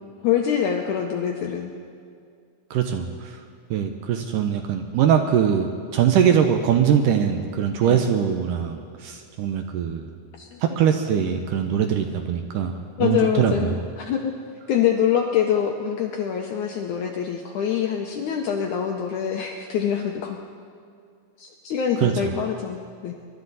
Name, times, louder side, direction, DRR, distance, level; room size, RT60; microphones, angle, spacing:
voice 1, 0.2-1.7 7.8-8.1 10.4-10.6 13.0-14.3 14.7-20.4 21.4-23.1, left 8 dB, 80° left, 2 dB, 1.8 m, -25 dB
voice 2, 2.7-3.4 3.7-10.1 10.6-12.7 13.0-13.7 22.0-22.1, right 8 dB, 75° right, 5 dB, 2.1 m, -22 dB
23.5 x 12.0 x 4.0 m, 2.3 s
omnidirectional pair, 4.3 m